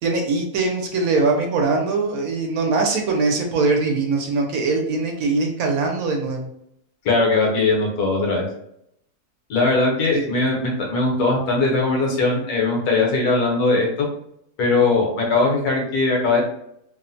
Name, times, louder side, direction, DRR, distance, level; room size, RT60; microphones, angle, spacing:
voice 1, 0.0-6.5 10.1-10.3, right 3 dB, 75° right, 2 dB, 1.0 m, -22 dB
voice 2, 7.0-8.4 9.5-14.1 14.6-16.4, left 3 dB, 75° left, 0 dB, 1.3 m, -20 dB
2.9 x 2.1 x 2.5 m, 0.74 s
omnidirectional pair, 1.7 m